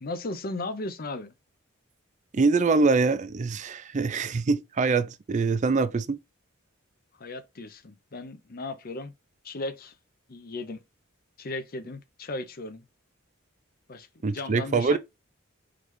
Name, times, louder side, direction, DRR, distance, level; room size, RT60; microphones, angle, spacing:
voice 1, 0.0-1.3 7.2-9.1 9.4-9.9 10.3-10.8 11.4-12.8 13.9-15.0, left 2 dB, 45° left, 0.6 m, -36 dB
voice 2, 2.3-6.2 14.2-15.0, right 4 dB, 35° right, 0.4 m, -24 dB
3.9 x 3.2 x 3.1 m
head